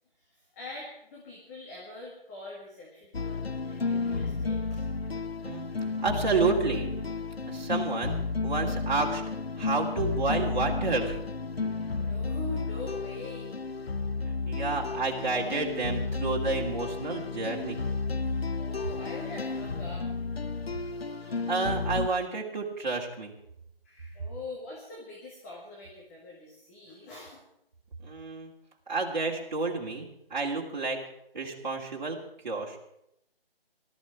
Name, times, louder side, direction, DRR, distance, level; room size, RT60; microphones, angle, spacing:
voice 1, 0.2-4.9 12.1-13.6 18.6-20.1 20.9-21.1 23.8-27.4, left 2 dB, 15° left, -3 dB, 1.9 m, -43 dB
sound 1, 3.1-22.1, left 4 dB, 80° left, 1.0 m, -32 dB
voice 2, 6.0-6.9 7.5-9.2 9.6-11.2 14.3-17.8 21.3-23.3 28.0-28.5 28.9-31.0 31.3-32.2 32.4-32.8, right 3 dB, 50° right, -2 dB, 3.1 m, -30 dB
19.5 x 13.0 x 4.7 m, 0.77 s
figure-of-eight pair, 160°, 30 cm